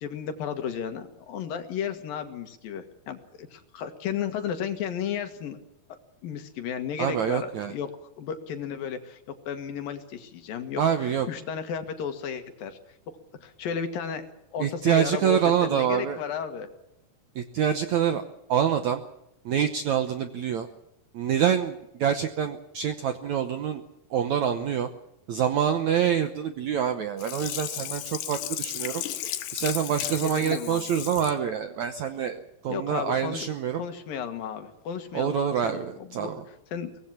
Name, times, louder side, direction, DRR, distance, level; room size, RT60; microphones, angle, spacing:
voice 1, 0.0-5.6 5.9-12.8 13.1-14.3 14.5-16.7 30.0-30.8 32.7-33.5 33.7-36.9, left 7 dB, 65° left, 7 dB, 3.2 m, -34 dB
voice 2, 7.0-7.7 10.8-11.3 14.6-16.2 17.4-18.2 18.5-19.0 19.5-20.7 21.1-23.8 24.1-24.9 25.3-29.0 29.5-33.8 35.1-36.4, right 8 dB, 70° right, 8 dB, 1.8 m, -26 dB
Sink (filling or washing), 27.2-31.4 31.8-31.9, left 12 dB, 85° left, 3.3 m, -34 dB
24.0 x 18.5 x 7.3 m, 0.85 s
omnidirectional pair, 4.6 m